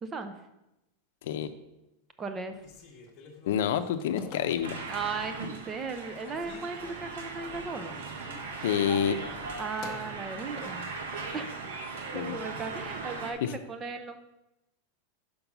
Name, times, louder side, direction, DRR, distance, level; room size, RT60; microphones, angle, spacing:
voice 1, 0.0-0.3 2.2-2.6 4.9-8.0 9.6-10.9 11.3-11.5 12.1-14.2, right 4 dB, 15° right, 8 dB, 0.5 m, -36 dB
Telephone, 2.5-5.0 5.5-6.0 6.3-11.3, left 3 dB, 30° left, 1.1 m, -49 dB
voice 2, 3.5-4.9 8.6-9.2 12.1-12.4 13.4-13.5, left 9 dB, 70° left, 9 dB, 0.6 m, -28 dB
sound 1, 4.6-13.3, right 4 dB, 90° right, 1.0 m, -39 dB
5.4 x 5.2 x 6.0 m, 0.93 s
supercardioid pair, 165°, 0 cm